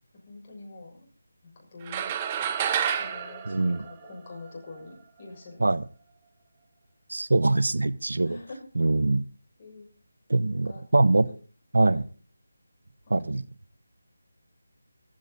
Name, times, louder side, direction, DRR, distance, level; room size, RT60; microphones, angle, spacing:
voice 1, 0.1-1.1 1.4-2.1 2.9-5.7 8.2-8.7 9.6-9.9 10.5-10.8 11.8-12.1 13.0-13.4, left 2 dB, 25° left, -1 dB, 6.7 m, -45 dB
sound 1, 1.9-4.5, right 8 dB, 15° right, 0.9 m, -29 dB
voice 2, 3.5-3.8 5.6-5.8 7.1-8.4 8.8-9.2 10.3-11.3 11.7-12.0 13.1-13.4, right 2 dB, 80° right, 17 dB, 1.1 m, -23 dB
15.5 x 15.0 x 4.1 m, 0.37 s
figure-of-eight pair, 170°, 0 cm